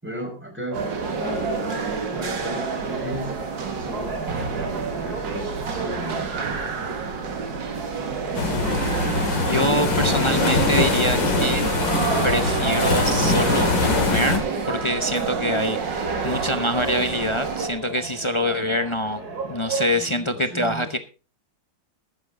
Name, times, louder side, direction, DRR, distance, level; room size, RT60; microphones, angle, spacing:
voice 1, 0.0-6.3 19.9-20.9, equal, 5° right, 2 dB, 5.2 m, -36 dB
sound 1, 0.7-19.9, right 3 dB, 55° right, 3.1 m, -34 dB
sound 2, 0.7-17.7, right 5 dB, 80° right, 2.5 m, -29 dB
sound 3, 8.3-14.4, left 3 dB, 90° left, 3.1 m, -22 dB
voice 2, 9.3-11.7 12.2-21.0, equal, 35° left, 9 dB, 0.4 m, -25 dB
14.5 x 12.0 x 3.7 m, 0.34 s
omnidirectional pair, 1.9 m